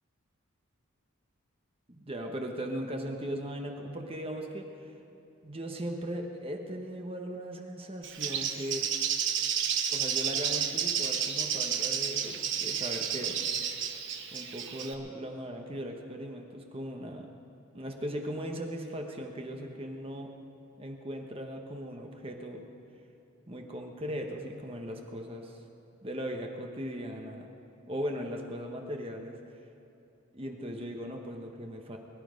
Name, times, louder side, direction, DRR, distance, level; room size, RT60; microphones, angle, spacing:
voice 1, 1.9-5.0 5.4-8.9 9.9-13.4 14.3-17.3 17.7-20.3 20.8-22.7 23.5-25.6 26.0-27.5 27.9-29.4 30.3-32.0, equal, 25° right, 2 dB, 1.1 m, -38 dB
Bird, 8.0-14.9, right 8 dB, 55° right, 1.1 m, -31 dB
22.5 x 12.0 x 5.2 m, 2.9 s
head